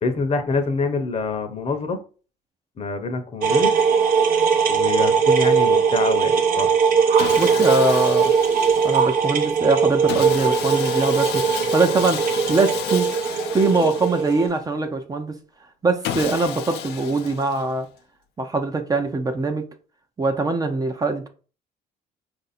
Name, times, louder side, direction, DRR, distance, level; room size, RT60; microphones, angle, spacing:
voice 1, 0.0-2.0 2.8-3.7 4.7-6.7, left 3 dB, 35° left, 0.8 m, -25 dB
sound 1, 3.4-14.5, right 6 dB, 60° right, 0.7 m, -20 dB
Sawing, 7.2-9.2 10.1-14.6 16.0-17.9, left 10 dB, 80° left, 0.6 m, -32 dB
voice 2, 7.3-8.3 8.8-13.1 13.5-15.3 15.8-17.9 18.4-19.6 20.2-21.3, right 3 dB, 20° right, 0.6 m, -22 dB
4.6 x 2.6 x 4.2 m
cardioid pair, 110°, 17 cm